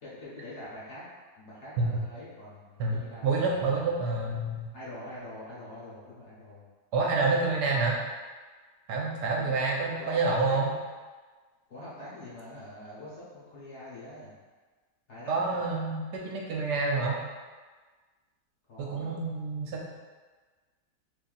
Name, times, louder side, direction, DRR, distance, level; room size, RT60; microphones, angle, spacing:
voice 1, 0.0-1.0 1.4-3.9 4.7-6.6 9.3-10.6 11.7-14.3 15.1-15.6 18.7-19.1, left 1 dB, 50° left, -8 dB, 1.1 m, -44 dB
voice 2, 2.8-4.7 6.9-8.0 8.9-10.7 15.3-17.2 18.8-20.0, right 3 dB, 80° right, -1 dB, 1.2 m, -28 dB
3.0 x 2.7 x 3.9 m, 1.4 s
omnidirectional pair, 1.8 m